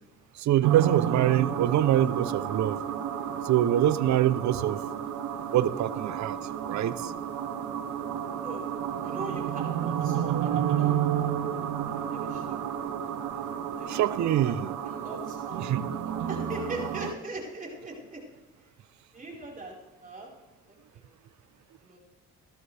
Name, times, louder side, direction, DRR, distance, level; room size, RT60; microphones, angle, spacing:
voice 1, 0.3-2.8 3.4-4.8 5.5-6.4 6.7-7.1 13.9-14.7 15.6-15.9, right 12 dB, 65° right, 15 dB, 0.7 m, -25 dB
sound 1, 0.6-17.1, right 9 dB, 85° right, 1.0 m, -31 dB
voice 2, 8.3-8.7 9.0-11.1 11.4-12.6 13.8-14.5 14.8-15.7 16.3-18.2 19.1-19.7 20.0-20.3 20.7-21.0 21.8-22.0, right 2 dB, 25° right, -3 dB, 4.6 m, -41 dB
17.5 x 12.5 x 3.4 m, 1.1 s
cardioid pair, 90°, 30 cm